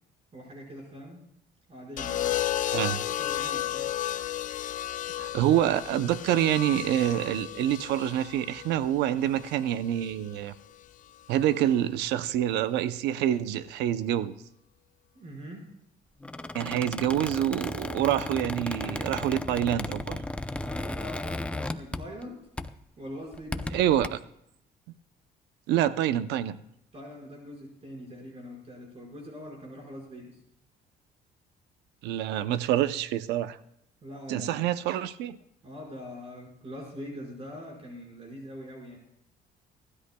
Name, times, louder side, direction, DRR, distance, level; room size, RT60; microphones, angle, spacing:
voice 1, 0.3-1.3 1.7-3.9 15.1-15.7 18.7-19.3 20.6-22.5 23.0-23.7 26.9-30.4 34.0-34.6 35.6-39.0, equal, 35° right, -1 dB, 5.2 m, -43 dB
sound 1, 2.0-10.1 11.3-11.7, left 12 dB, 50° left, 0.6 m, -33 dB
voice 2, 5.2-10.5 11.3-14.4 16.5-20.2 23.7-24.2 25.7-26.6 32.0-33.6 34.3-35.4, right 11 dB, 85° right, 13 dB, 0.7 m, -26 dB
Squeak, 16.2-22.3 22.6-22.8 23.3-24.1, left 2 dB, 5° left, 0.6 m, -35 dB
24.0 x 13.0 x 2.3 m, 0.76 s
cardioid pair, 110°, 17 cm